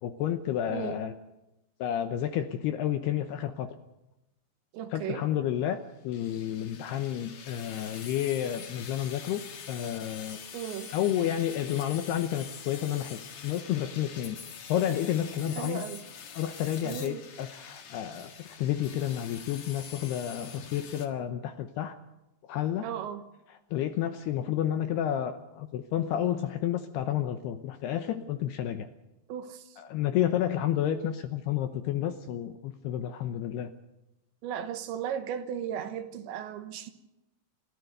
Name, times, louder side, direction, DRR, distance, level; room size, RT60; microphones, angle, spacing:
voice 1, 0.0-1.1 1.8-3.7 4.9-5.8 6.0-10.4 10.9-14.4 14.7-15.8 16.4-22.0 22.4-22.9 23.7-28.9 29.8-33.7, left 11 dB, 75° left, 8 dB, 2.5 m, -30 dB
voice 2, 0.7-1.0 4.7-5.2 10.5-10.9 15.6-16.0 16.8-17.2 22.8-23.2 29.3-29.8 34.4-36.9, right 9 dB, 75° right, 9 dB, 3.3 m, -36 dB
sound 1, 6.1-21.1, left 7 dB, 55° left, 2.0 m, -45 dB
30.0 x 13.5 x 6.6 m, 0.94 s
omnidirectional pair, 5.6 m